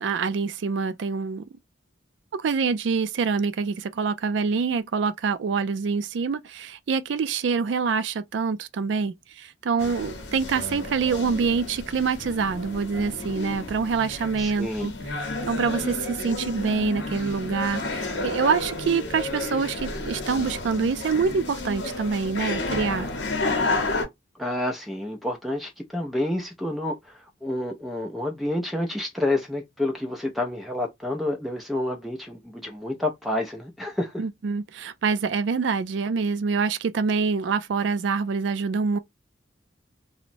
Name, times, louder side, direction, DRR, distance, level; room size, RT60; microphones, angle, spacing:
voice 1, 0.0-1.5 2.3-14.9 15.5-23.1 34.2-39.0, right 5 dB, 70° right, 0.4 m, -26 dB
sound 1, 9.8-24.1, left 2 dB, 65° left, 0.8 m, -31 dB
voice 2, 14.4-14.9 24.3-34.2, left 1 dB, ahead, 0.4 m, -29 dB
2.8 x 2.1 x 2.5 m
head